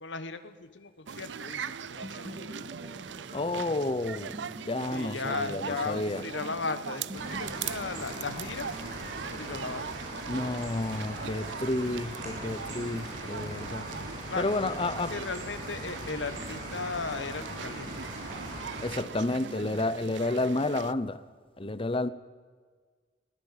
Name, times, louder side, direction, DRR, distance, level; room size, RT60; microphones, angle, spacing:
voice 1, 0.0-2.7 4.9-8.7 9.3-10.0 14.3-14.7 15.1-18.0 18.4-18.5, left 4 dB, 80° left, 10 dB, 1.3 m, -37 dB
sound 1, 1.1-20.9, right 7 dB, 75° right, 0.6 m, -41 dB
sound 2, 2.0-7.6, equal, 30° right, 2.4 m, -46 dB
voice 2, 3.3-4.4 4.6-6.2 10.3-13.9 14.4-15.1 18.8-21.2 21.6-22.1, left 2 dB, 30° left, 13 dB, 0.9 m, -30 dB
sound 3, 7.1-18.9, right 1 dB, 50° right, 7.0 m, -40 dB
21.5 x 17.0 x 7.5 m, 1.5 s
head